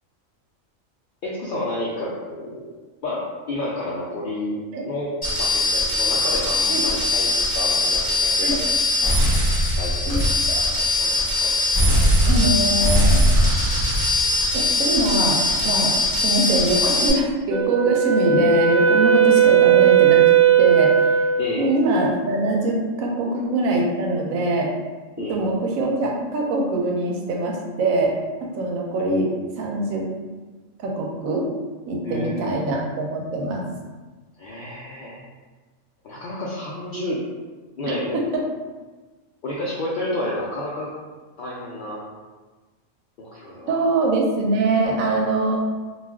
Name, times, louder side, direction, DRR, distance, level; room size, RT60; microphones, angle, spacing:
voice 1, 1.2-2.7 3.0-4.6 4.9-5.1 5.4-8.5 9.0-9.2 9.5-10.1 10.5-11.5 21.4-21.6 25.2-25.4 32.0-32.6 34.4-35.2 36.0-37.2 37.8-38.2 39.4-40.9 41.4-42.0 43.2-43.8, left 1 dB, 80° left, -6 dB, 0.4 m, -30 dB
sound 1, 5.2-17.1, left 1 dB, 25° left, 0.6 m, -20 dB
voice 2, 12.2-13.3 14.5-16.0 16.2-20.3 20.6-21.3 21.6-24.7 25.3-30.1 30.8-31.5 31.9-33.7 38.1-38.4 43.7-45.6, right 2 dB, 85° right, 0 dB, 1.0 m, -23 dB
Wind instrument woodwind instrument, 17.5-21.6, right 8 dB, 45° right, 0.4 m, -16 dB
2.4 x 2.3 x 3.4 m, 1.3 s
omnidirectional pair, 1.4 m